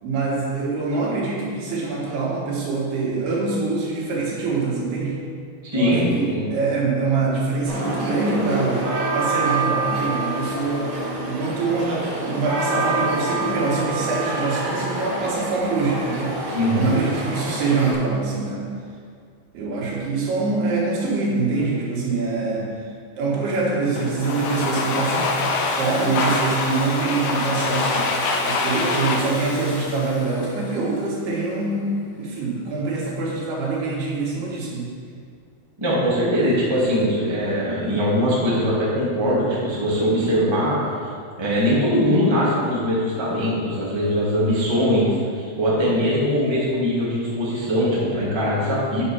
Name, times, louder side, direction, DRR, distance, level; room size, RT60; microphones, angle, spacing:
voice 1, 0.0-5.2 5.7-8.9 9.1-10.9 11.3-16.4 16.8-18.7 19.5-22.7 23.2-25.3 25.7-28.1 28.4-34.9, right 3 dB, 90° right, -4 dB, 3.8 m, -24 dB
voice 2, 5.6-6.5 16.5-16.9 35.8-40.8 41.4-49.0, equal, 10° right, -7 dB, 1.4 m, -21 dB
sound 1, 7.7-17.9, right 2 dB, 55° right, 3.0 m, -26 dB
Domestic sounds home sounds, 24.0-30.8, left 3 dB, 75° left, 1.7 m, -25 dB
10.0 x 5.6 x 5.7 m, 2.2 s
omnidirectional pair, 4.4 m